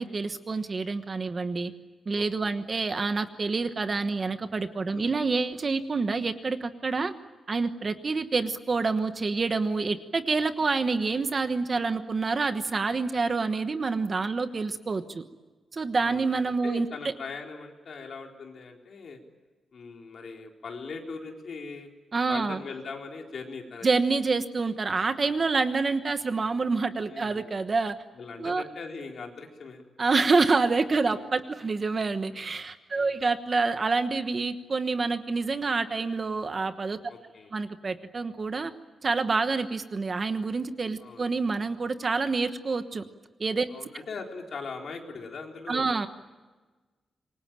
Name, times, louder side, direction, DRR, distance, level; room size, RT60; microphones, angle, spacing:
voice 1, 0.0-1.7 2.1-7.1 7.5-15.2 15.7-17.1 22.1-22.6 23.8-27.9 28.4-28.6 30.0-37.0 37.5-38.7 39.0-43.0 43.4-43.7 45.7-46.1, right 4 dB, 30° right, 9 dB, 1.2 m, -27 dB
voice 2, 2.1-2.6 4.9-5.2 15.9-19.2 19.7-21.9 22.3-23.9 27.1-27.5 28.2-29.8 31.0-31.1 33.0-33.1 37.1-37.5 41.0-41.3 43.7-45.9, left 4 dB, 50° left, 2 dB, 4.0 m, -40 dB
27.0 x 23.5 x 9.0 m, 1.3 s
wide cardioid pair, 180°, 0 cm